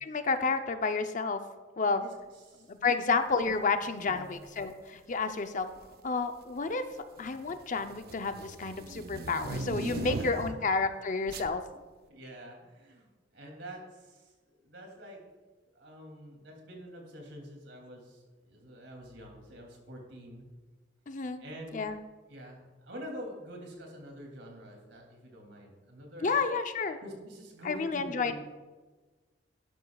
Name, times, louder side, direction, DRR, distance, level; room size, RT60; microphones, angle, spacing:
voice 1, 0.0-1.4 1.8-2.0 2.7-5.7 6.0-6.8 7.2-11.6 21.1-21.4 21.7-22.0 26.2-27.0 27.6-28.4, left 4 dB, 45° left, 8 dB, 0.6 m, -30 dB
voice 2, 1.8-2.8 4.0-4.3 10.0-10.6 12.1-15.2 15.7-20.4 21.4-21.9 22.3-26.4 27.0-28.4, equal, 75° right, 1 dB, 2.7 m, -47 dB
sound 1, 4.4-4.6 5.6-6.1 6.4-10.7 11.3-11.5, right 3 dB, 55° right, 0.6 m, -39 dB
11.5 x 11.0 x 2.4 m, 1.3 s
head